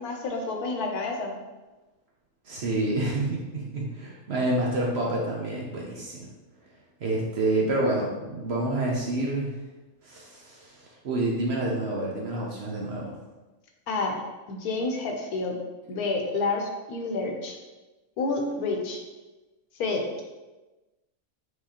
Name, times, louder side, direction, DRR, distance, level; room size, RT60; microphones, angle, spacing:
voice 1, 0.0-1.4 13.9-14.2 14.5-15.6 15.9-17.6 18.2-19.0 19.8-20.2, left 3 dB, 80° left, 2 dB, 1.2 m, -29 dB
voice 2, 2.4-6.3 7.0-9.5 10.0-13.2, right 2 dB, 55° right, -3 dB, 0.8 m, -28 dB
4.7 x 3.6 x 2.9 m, 1.1 s
omnidirectional pair, 1.6 m